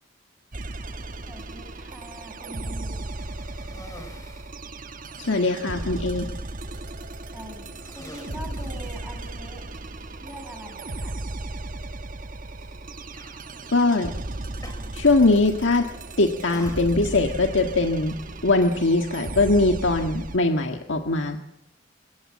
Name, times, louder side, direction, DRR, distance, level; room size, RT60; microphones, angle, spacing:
sound 1, 0.5-20.4, right 2 dB, 45° right, 1.1 m, -36 dB
voice 1, 1.3-3.1 7.3-9.7 10.2-11.2, equal, 5° right, 4 dB, 6.4 m, -43 dB
Cough, 3.0-4.6 5.3-5.4 5.8-6.3 7.1-7.3 7.7-9.6 10.6-10.7 12.5-12.7 13.1-13.4 14.6-15.3 15.6-16.0 16.5-17.3, left 1 dB, 20° left, 5.2 m, -47 dB
voice 2, 5.2-6.3 13.7-14.1 14.9-15.8 16.2-18.1 18.4-21.4, left 2 dB, 90° left, 5 dB, 1.7 m, -21 dB
27.5 x 16.0 x 7.4 m, 0.83 s
head